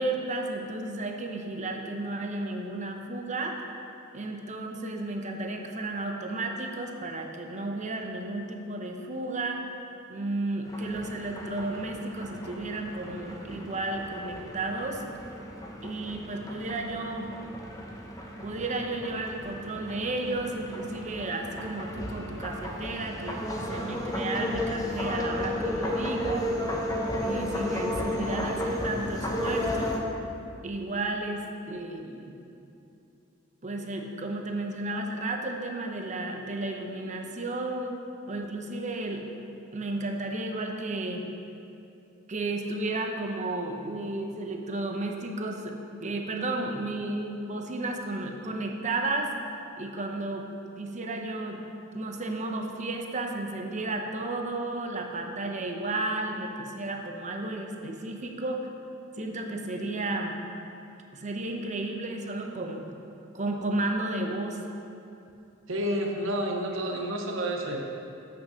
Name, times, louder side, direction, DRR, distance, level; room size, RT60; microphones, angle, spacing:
voice 1, 0.0-3.7 4.1-9.6 10.1-15.0 15.8-17.3 18.4-26.5 27.2-30.1 30.6-32.4 33.6-38.0 38.3-39.3 39.7-41.2 42.3-49.3 49.8-50.5 50.8-51.6 51.9-58.7 59.2-60.4 61.1-62.9 63.3-64.6, right 2 dB, 35° right, 3 dB, 0.8 m, -33 dB
sound 1, 10.7-30.0, left 1 dB, 20° left, 0.9 m, -34 dB
voice 2, 65.7-67.8, equal, 70° right, 2 dB, 0.9 m, -29 dB
8.1 x 6.5 x 6.1 m, 2.7 s
head